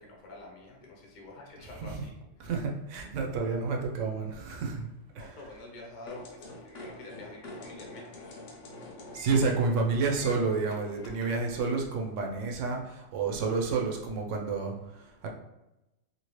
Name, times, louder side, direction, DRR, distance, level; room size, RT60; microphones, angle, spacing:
voice 1, 0.0-2.1 5.2-8.3 9.2-9.3, left 2 dB, 45° left, -1 dB, 0.7 m, -47 dB
voice 2, 2.4-4.9 5.1-5.3 9.1-15.3, right 4 dB, 80° right, 1 dB, 0.9 m, -30 dB
sound 1, 6.1-11.6, left 1 dB, 70° left, 1.0 m, -46 dB
2.8 x 2.7 x 3.0 m, 0.93 s
omnidirectional pair, 1.3 m